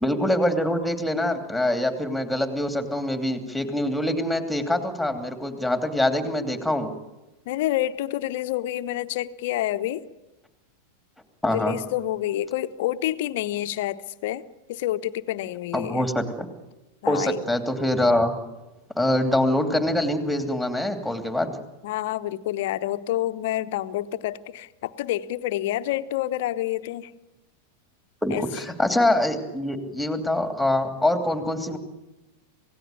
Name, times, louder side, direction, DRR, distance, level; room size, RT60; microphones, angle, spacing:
voice 1, 0.0-6.9 11.4-11.8 15.7-16.5 17.1-18.3 19.0-21.6 28.2-31.8, left 1 dB, ahead, 7 dB, 2.9 m, -24 dB
voice 2, 7.5-10.0 11.4-14.4 14.7-16.1 17.0-17.4 21.8-27.1 28.3-28.4, left 14 dB, 50° left, 12 dB, 1.0 m, -28 dB
27.5 x 17.5 x 9.5 m, 1.0 s
figure-of-eight pair, 90°, 0 cm